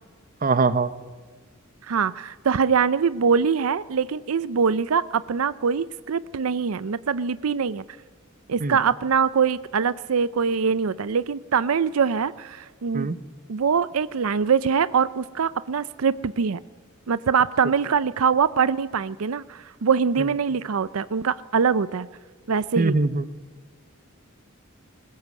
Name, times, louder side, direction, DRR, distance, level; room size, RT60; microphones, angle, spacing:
voice 1, 0.4-0.9 8.6-8.8 12.9-13.2 22.8-23.3, right 3 dB, 40° right, 14 dB, 0.8 m, -22 dB
voice 2, 1.8-7.8 8.5-13.1 13.5-16.6 17.1-22.1 22.5-23.0, right 6 dB, 80° right, 16 dB, 0.5 m, -23 dB
20.5 x 19.0 x 8.3 m, 1.5 s
head